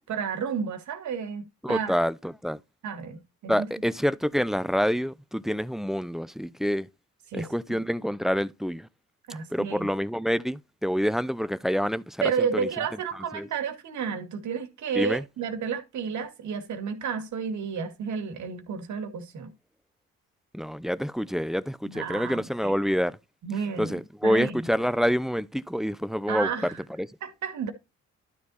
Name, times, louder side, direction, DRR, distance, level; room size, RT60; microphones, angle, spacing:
voice 1, 0.1-1.9 2.8-3.7 7.3-7.5 9.3-9.9 12.2-19.5 21.8-22.7 23.4-24.7 26.3-26.8 27.2-27.7, right 6 dB, 70° right, 2.4 m, -31 dB
voice 2, 1.6-2.6 3.5-6.9 7.3-8.9 9.5-12.7 13.1-13.5 14.9-15.2 20.5-23.2 23.8-27.1, equal, ahead, 0.6 m, -27 dB
12.0 x 4.4 x 4.2 m
cardioid pair, 90°, 30 cm